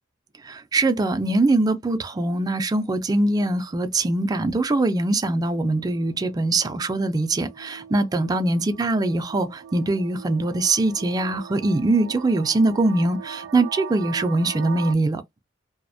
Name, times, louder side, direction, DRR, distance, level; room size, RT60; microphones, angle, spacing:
voice 1, 0.4-15.2, right 2 dB, 20° right, 0.3 m, -22 dB
sound 1, 3.2-14.9, right 7 dB, 90° right, 0.4 m, -42 dB
2.4 x 2.0 x 2.5 m
head